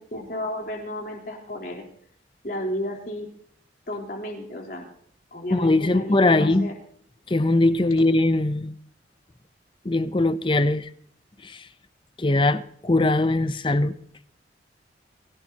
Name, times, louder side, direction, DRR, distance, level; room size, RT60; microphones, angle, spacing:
voice 1, 0.0-1.8 2.4-3.3 3.9-4.9 5.3-6.7, left 1 dB, 50° left, 3.9 m, -32 dB
voice 2, 5.5-6.7 7.3-8.7 9.8-10.9 11.4-11.6 12.2-13.9, left 2 dB, 25° left, 0.7 m, -21 dB
23.5 x 17.0 x 2.9 m
head